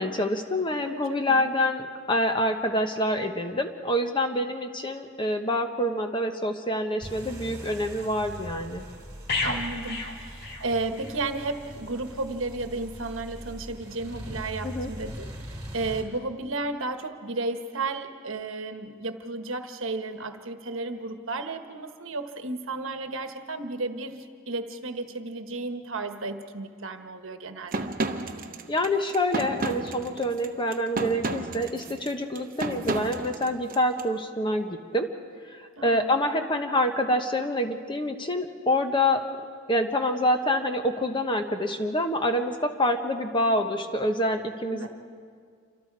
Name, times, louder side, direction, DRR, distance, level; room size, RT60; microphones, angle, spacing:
voice 1, 0.0-8.8 14.6-14.9 28.7-35.1 35.5-39.2 39.7-44.9, left 1 dB, 20° left, 5 dB, 1.2 m, -26 dB
voice 2, 0.8-1.5 9.4-27.9 35.8-36.1 44.7-44.9, right 3 dB, 65° right, 7 dB, 1.3 m, -33 dB
sound 1, 7.0-16.0, equal, 15° right, 2.9 m, -41 dB
sound 2, 9.3-11.2 11.5-11.7, left 3 dB, 50° left, 2.2 m, -32 dB
sound 3, 27.7-34.0, right 2 dB, 40° right, 1.0 m, -32 dB
28.0 x 25.0 x 4.8 m, 2.1 s
head